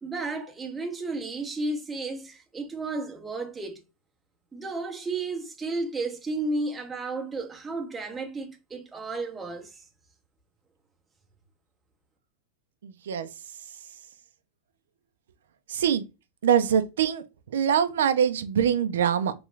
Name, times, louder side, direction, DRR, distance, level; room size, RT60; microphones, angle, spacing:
voice 1, 0.0-3.8 4.5-9.8, right 3 dB, 10° right, 0.6 m, -33 dB
voice 2, 12.8-13.3 15.7-16.0 16.4-17.2 17.5-19.3, right 8 dB, 90° right, 0.4 m, -23 dB
3.0 x 2.4 x 3.1 m
supercardioid pair, 140°, 0 cm